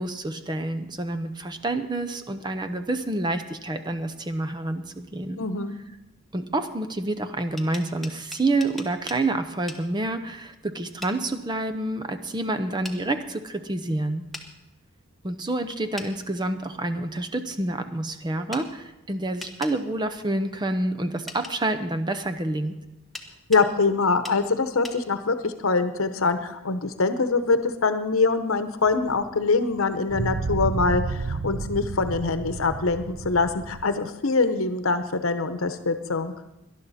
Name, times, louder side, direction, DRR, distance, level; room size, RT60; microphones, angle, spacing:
voice 1, 0.0-5.4 6.3-14.3 15.2-22.8, right 2 dB, 20° right, 8 dB, 0.7 m, -28 dB
voice 2, 5.4-5.7 23.5-36.3, left 4 dB, 75° left, 9 dB, 0.9 m, -24 dB
sound 1, 7.4-9.2 9.7-9.8 11.0-11.2 12.8-13.0 14.3-14.5 16.0-16.1 18.5-18.7 19.4-19.8 21.3-21.6 23.1-23.7 24.2-24.4 24.8-25.0, left 2 dB, ahead, 1.0 m, -39 dB
sound 2, 28.9-29.0 30.1-33.8, right 4 dB, 60° right, 0.6 m, -31 dB
18.5 x 11.5 x 4.2 m, 0.95 s
head